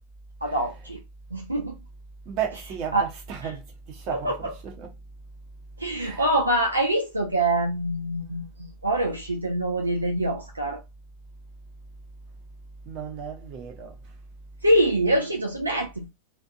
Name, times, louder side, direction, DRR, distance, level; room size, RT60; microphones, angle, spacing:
voice 1, 0.4-1.0 1.3-1.8 2.9-3.1 4.1-4.5 5.8-10.8 14.6-16.1, right 1 dB, 85° right, 0.4 m, -25 dB
voice 2, 2.3-3.6 3.9-4.9 6.0-6.3 12.9-14.0, right 7 dB, 40° right, 0.9 m, -34 dB
2.5 x 2.2 x 2.7 m
figure-of-eight pair, 90°, 0 cm